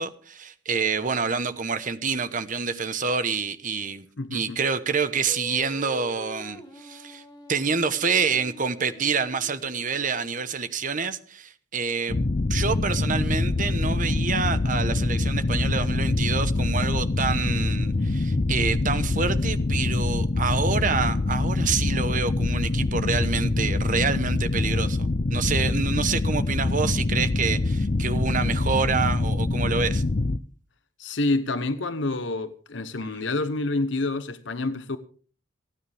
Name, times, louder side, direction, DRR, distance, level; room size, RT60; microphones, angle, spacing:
voice 1, 0.0-4.0 4.3-7.2 7.5-12.2 12.5-30.0, right 5 dB, 40° right, 1.1 m, -27 dB
voice 2, 4.2-4.6 31.0-35.0, left 2 dB, 65° left, 0.9 m, -28 dB
Singing, 5.3-10.6, equal, 20° left, 2.7 m, -45 dB
sound 1, 12.1-30.4, left 2 dB, 40° left, 0.6 m, -25 dB
28.0 x 9.8 x 3.5 m
head